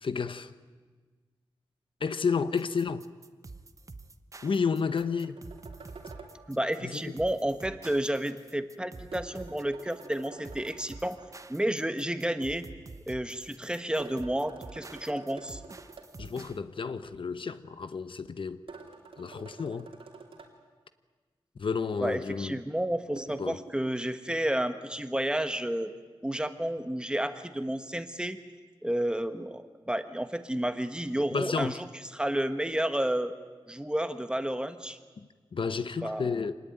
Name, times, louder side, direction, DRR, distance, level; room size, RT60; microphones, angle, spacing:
voice 1, 0.0-0.5 2.0-3.1 4.4-5.4 6.8-7.1 16.2-18.6 19.2-19.9 21.6-22.6 23.4-23.6 31.3-31.8 35.2-36.5, left 5 dB, 70° left, 0.9 m, -31 dB
sound 1, 2.6-16.6, right 3 dB, 35° right, 1.0 m, -48 dB
sound 2, 4.5-6.4 9.1-11.3 14.0-16.1 18.7-20.5 23.2-24.0, right 4 dB, 85° right, 3.1 m, -48 dB
voice 2, 6.5-11.2 11.5-12.7 13.1-15.6 22.0-25.9 26.2-28.4 28.8-31.9 32.1-33.3 33.7-35.0 36.0-36.4, right 1 dB, 10° right, 1.3 m, -31 dB
25.5 x 19.5 x 9.2 m
wide cardioid pair, 120°, 9 cm